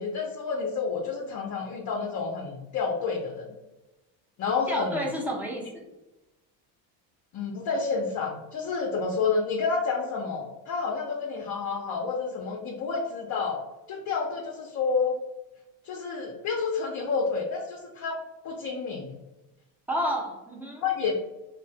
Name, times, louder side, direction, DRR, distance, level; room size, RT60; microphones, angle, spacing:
voice 1, 0.0-3.5 4.4-5.0 7.3-13.6 13.9-15.2 15.8-18.2 18.4-19.1 20.8-21.1, left 5 dB, 40° left, 0 dB, 0.5 m, -29 dB
voice 2, 4.7-5.8 19.9-20.8, equal, 5° right, -2 dB, 0.5 m, -30 dB
2.9 x 2.1 x 2.6 m, 1.0 s
supercardioid pair, 105°, 49 cm